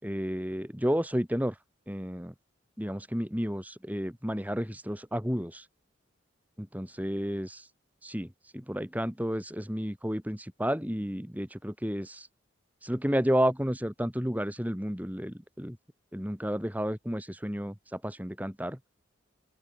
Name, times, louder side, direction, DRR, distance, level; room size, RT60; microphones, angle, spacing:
voice 1, 0.0-1.5 1.9-2.3 2.8-5.6 6.6-7.6 8.0-12.3 12.8-15.8 16.1-18.8, equal, 10° right, 3.5 m, -31 dB
open air
head